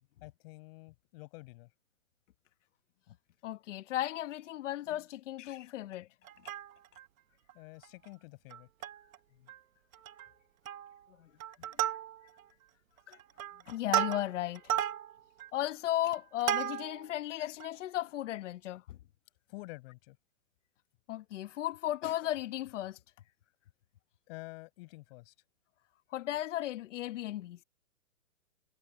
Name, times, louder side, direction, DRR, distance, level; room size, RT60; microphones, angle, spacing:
voice 1, 0.2-1.7 7.5-8.7 19.5-20.2 24.3-25.3, left 23 dB, 45° left, 7.5 m, -49 dB
voice 2, 3.4-6.1 6.4-6.5 11.2-11.3 13.1-13.2 13.7-14.8 15.5-19.0 21.1-23.0 26.1-27.6, left 13 dB, 60° left, 1.2 m, -35 dB
Plucked string instrument, 6.3-7.1 7.5-7.6 7.8-8.1 8.5-9.2 9.5-9.6 9.9-10.3 10.7-11.0 11.4-12.5 13.0-17.1 17.6-17.7, right 11 dB, 75° right, 1.0 m, -35 dB
hypercardioid pair, 140°, 41 cm